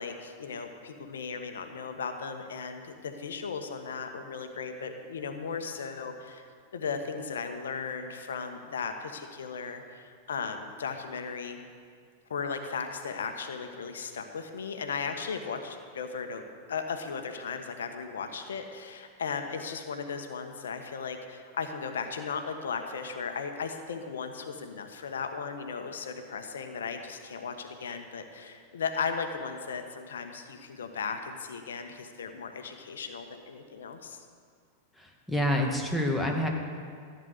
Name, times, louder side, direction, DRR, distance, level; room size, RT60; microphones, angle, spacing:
voice 1, 0.0-6.5 6.7-11.6 12.3-16.4 16.7-34.2, left 5 dB, 70° left, 6 dB, 1.2 m, -36 dB
voice 2, 35.0-36.5, left 1 dB, ahead, -1 dB, 2.1 m, -28 dB
14.5 x 9.1 x 6.6 m, 2.1 s
figure-of-eight pair, 95°, 0 cm